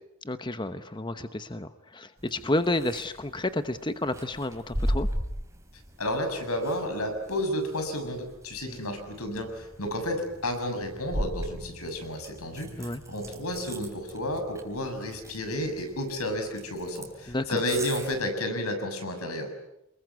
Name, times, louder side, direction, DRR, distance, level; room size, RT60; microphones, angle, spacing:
voice 1, 0.2-5.1 8.6-8.8 12.8-13.0 17.3-17.6, left 1 dB, 20° left, 10 dB, 0.9 m, -31 dB
sound 1, 2.2-18.3, equal, 15° right, 3.7 m, -38 dB
voice 2, 6.0-19.5, left 1 dB, 90° left, 6 dB, 6.8 m, -31 dB
28.5 x 21.5 x 9.6 m, 0.84 s
head